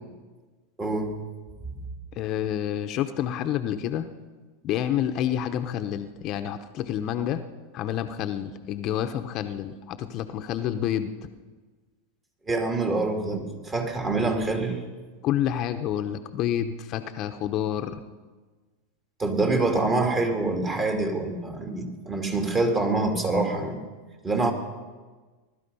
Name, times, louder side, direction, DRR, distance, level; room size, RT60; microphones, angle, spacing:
voice 1, 0.8-1.1 12.5-14.8 19.2-23.8 24.2-24.5, right 2 dB, 20° right, 3 dB, 2.7 m, -25 dB
voice 2, 2.1-4.1 4.6-7.4 7.7-11.1 15.2-18.0, left 10 dB, 45° left, 8 dB, 0.9 m, -28 dB
19.5 x 12.5 x 5.5 m, 1.4 s
hypercardioid pair, 120°, 0 cm